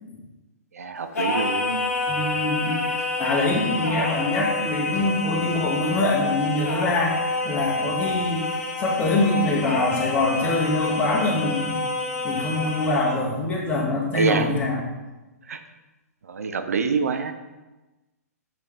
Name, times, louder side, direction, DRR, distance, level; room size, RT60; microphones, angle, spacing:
voice 1, 0.7-1.8 14.1-14.5 15.5-15.6 16.2-17.3, right 4 dB, 65° right, 8 dB, 0.6 m, -25 dB
Singing, 1.1-13.2, left 3 dB, 60° left, 1.2 m, -28 dB
voice 2, 2.1-2.8 3.2-7.2 7.4-11.8 12.2-14.8, left 2 dB, 20° left, -3 dB, 1.4 m, -24 dB
6.3 x 5.2 x 3.3 m, 1.1 s
figure-of-eight pair, 115°, 9 cm